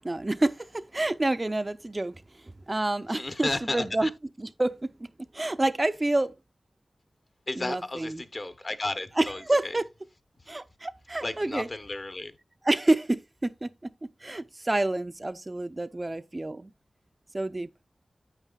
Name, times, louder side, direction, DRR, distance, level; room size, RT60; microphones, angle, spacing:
voice 1, 0.0-4.1 4.4-5.1 5.3-6.3 7.6-8.2 9.2-9.8 10.5-11.7 12.6-13.9 14.2-16.7 17.3-17.7, right 2 dB, 30° right, 0.5 m, -28 dB
voice 2, 3.1-4.1 7.5-9.8 11.2-12.4, left 2 dB, 40° left, 0.9 m, -33 dB
9.0 x 8.9 x 2.3 m
wide cardioid pair, 80°, 0 cm